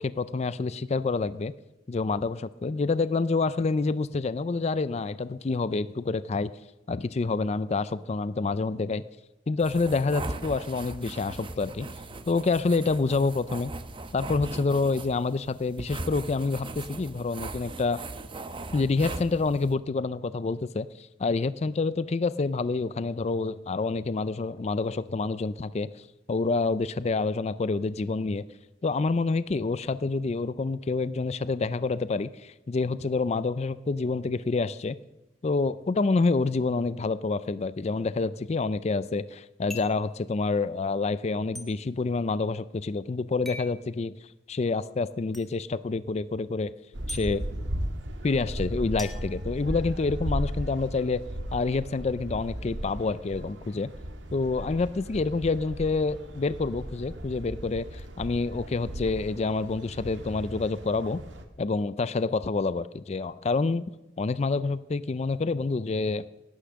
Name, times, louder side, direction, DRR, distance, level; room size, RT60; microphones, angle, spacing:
voice 1, 0.0-1.5 1.9-6.5 6.9-9.0 9.5-11.9 12.3-13.7 14.1-18.0 18.7-25.9 26.3-28.4 28.8-35.0 35.4-44.1 44.5-46.7 47.1-47.4 48.2-51.2 51.5-53.9 54.3-61.2 61.6-63.8 64.2-66.3, left 3 dB, 35° left, 16 dB, 0.4 m, -27 dB
sound 1, 9.6-19.7, right 2 dB, 30° right, 0.9 m, -39 dB
sound 2, 39.7-40.1 41.5-41.7 43.4-43.8 45.3-45.5 47.1-47.2 49.0-50.1, left 1 dB, ahead, 1.7 m, -41 dB
sound 3, 46.9-61.4, equal, 90° right, 1.7 m, -36 dB
17.0 x 10.0 x 6.3 m, 0.99 s
head